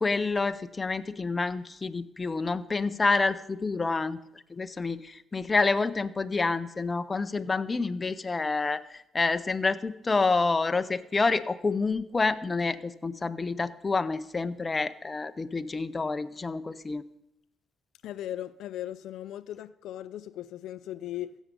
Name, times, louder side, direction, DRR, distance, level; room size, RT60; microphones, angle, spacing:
voice 1, 0.0-4.2 4.5-17.0, left 3 dB, 25° left, 0.6 m, -28 dB
voice 2, 18.0-21.4, left 12 dB, 85° left, 0.3 m, -38 dB
16.0 x 7.2 x 5.2 m
cardioid pair, 90°, 0 cm